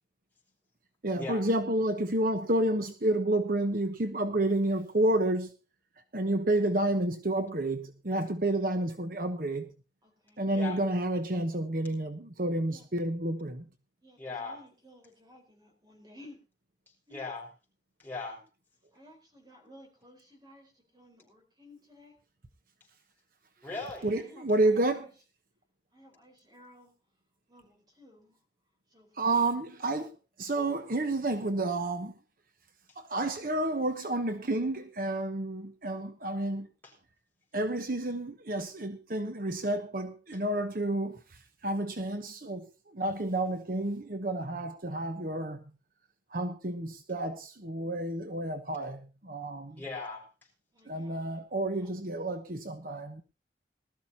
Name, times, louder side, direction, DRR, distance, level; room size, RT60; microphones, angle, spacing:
voice 1, 1.0-5.5 6.1-9.7 10.4-13.6 24.0-25.0 29.2-30.1 30.4-32.1 33.0-36.7 37.5-45.6 46.3-49.8 50.9-53.2, right 1 dB, 50° right, 1.1 m, -30 dB
voice 2, 10.0-10.4 12.7-12.9 14.0-16.4 17.1-17.2 18.9-22.2 23.6-23.7 24.1-25.1 25.9-26.9 27.5-28.4 28.9-29.5 41.0-41.2 49.7-49.9 50.7-51.2 51.7-51.9, left 1 dB, 25° right, 4.5 m, -56 dB
voice 3, 14.2-14.6 17.1-17.5 18.0-18.4 23.6-24.2 36.8-36.9 49.8-50.3, left 3 dB, 10° left, 6.0 m, -38 dB
20.0 x 13.5 x 2.9 m
head